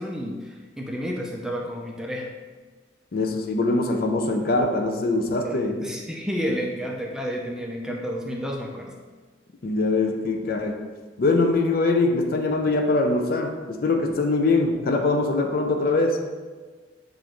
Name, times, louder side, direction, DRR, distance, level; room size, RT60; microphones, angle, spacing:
voice 1, 0.0-2.3 5.4-8.9, equal, 5° right, -1 dB, 0.4 m, -31 dB
voice 2, 3.1-5.9 9.6-10.8 11.2-16.2, left 3 dB, 55° left, 3 dB, 0.4 m, -23 dB
6.9 x 2.5 x 3.0 m, 1.4 s
head